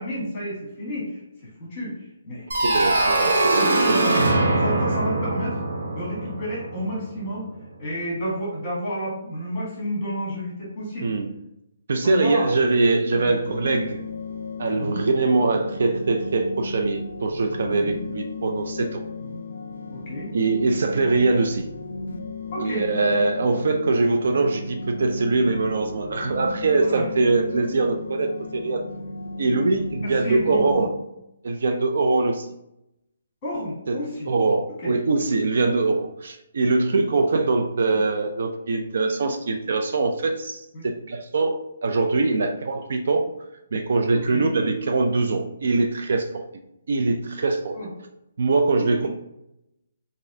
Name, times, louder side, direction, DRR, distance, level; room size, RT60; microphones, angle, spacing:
voice 1, 0.0-1.9 2.2-2.4 3.5-4.1 4.6-5.6 5.9-7.4 7.8-11.1 12.0-12.5 13.1-13.3 14.8-15.0 17.8-18.0 19.2-19.4 19.9-20.3 22.5-22.8 26.8-27.1 29.4-29.7 30.0-30.8 33.4-34.3 34.8-34.9 40.7-40.8 44.1-44.5 47.7-47.9 48.7-49.0, equal, 15° left, -5 dB, 1.3 m, -31 dB
sound 1, 2.5-7.2, right 2 dB, 90° right, 0.7 m, -22 dB
voice 2, 2.6-4.1 11.0-11.4 11.9-14.1 14.6-19.0 20.3-21.7 22.6-28.8 29.4-31.0 31.4-32.5 33.9-43.3 43.7-46.4 46.9-47.8 48.4-49.1, right 3 dB, 50° right, 5 dB, 0.3 m, -23 dB
sound 2, 13.4-30.9, left 3 dB, 70° left, 0.3 m, -35 dB
3.9 x 2.5 x 2.6 m, 0.84 s
hypercardioid pair, 180°, 0 cm